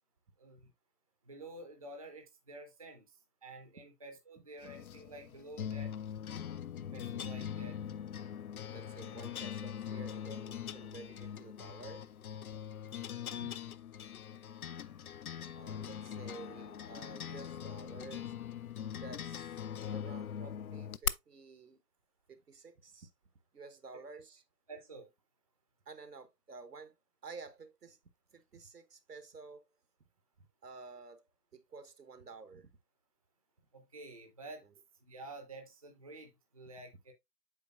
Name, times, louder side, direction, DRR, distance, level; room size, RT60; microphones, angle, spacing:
voice 1, 0.4-0.7 1.3-3.1 3.4-5.9 6.9-7.8 14.7-14.8 24.7-25.1 33.7-34.6 35.1-37.1, right 2 dB, 25° right, 0.5 m, -50 dB
sound 1, 4.6-21.1, left 9 dB, 65° left, 0.5 m, -42 dB
voice 2, 8.7-12.1 13.3-13.5 15.5-18.3 19.0-19.6 19.9-21.8 22.3-23.1 23.5-24.4 25.8-26.9 27.2-28.0 28.3-29.7 30.4-31.2 31.5-32.7 34.6-34.7, right 4 dB, 75° right, 1.2 m, -51 dB
8.1 x 5.1 x 2.4 m
figure-of-eight pair, 145°, 47 cm